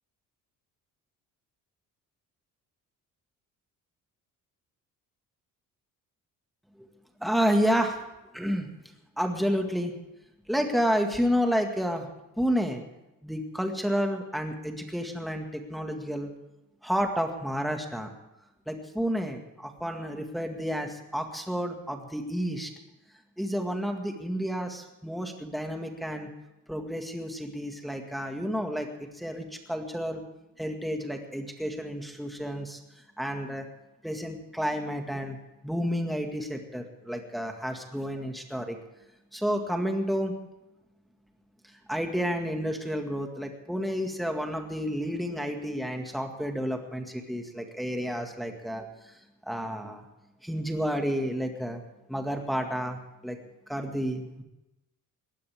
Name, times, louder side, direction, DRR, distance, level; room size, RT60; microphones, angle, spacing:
voice 1, 7.2-8.0 8.3-8.7 9.2-9.9 10.5-12.1 12.4-12.8 13.2-16.3 16.8-18.1 18.7-22.7 23.4-26.3 26.7-30.2 30.6-32.8 33.2-33.7 34.0-35.4 35.6-38.8 39.3-40.3 41.9-49.1 49.5-50.1 50.4-51.8 52.1-53.4 53.7-54.4, equal, ahead, 3 dB, 1.9 m, -30 dB
20.0 x 16.5 x 3.6 m, 0.94 s
cardioid pair, 125°, 33 cm